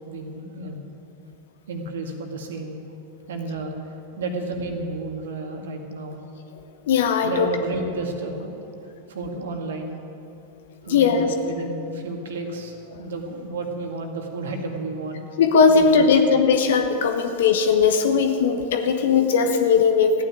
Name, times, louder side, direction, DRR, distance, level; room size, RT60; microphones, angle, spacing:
voice 1, 0.1-0.9 1.7-2.8 3.3-3.7 4.2-6.2 7.2-8.6 9.1-9.9 10.8-15.2 15.9-16.1, right 2 dB, 60° right, 3 dB, 2.1 m, -32 dB
voice 2, 6.9-7.5 10.9-11.3 15.4-20.2, left 5 dB, 60° left, 5 dB, 1.2 m, -18 dB
14.5 x 9.8 x 9.3 m, 2.9 s
figure-of-eight pair, 90°, 0 cm